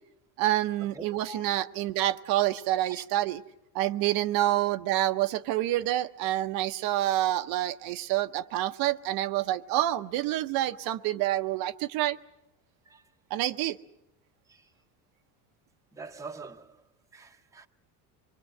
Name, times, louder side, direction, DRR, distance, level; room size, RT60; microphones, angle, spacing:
voice 1, 0.4-3.4 3.7-12.2 13.3-13.8, right 14 dB, 60° right, 0.8 m, -27 dB
voice 2, 0.9-1.5 2.9-3.0 12.8-13.0 14.5-14.7 15.9-16.8 17.1-17.7, right 3 dB, 10° right, 0.8 m, -44 dB
24.5 x 22.0 x 7.7 m
cardioid pair, 150°, 39 cm